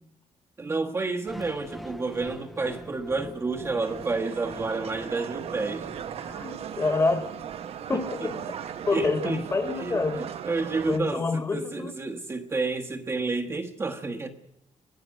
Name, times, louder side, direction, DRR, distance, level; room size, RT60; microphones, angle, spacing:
voice 1, 0.6-5.9 7.9-8.4 8.9-9.4 9.8-14.3, right 3 dB, 20° right, 2 dB, 1.3 m, -30 dB
sound 1, 1.3-7.3, equal, ahead, 0.9 m, -44 dB
sound 2, 3.8-11.0, right 8 dB, 55° right, 1.0 m, -37 dB
sound 3, 5.5-10.8, right 12 dB, 90° right, 2.3 m, -49 dB
voice 2, 6.2-7.3 7.9-8.3 8.9-10.2 10.9-11.9, left 3 dB, 25° left, 7 dB, 1.8 m, -27 dB
22.5 x 19.0 x 6.3 m, 0.79 s
cardioid pair, 160°, 12 cm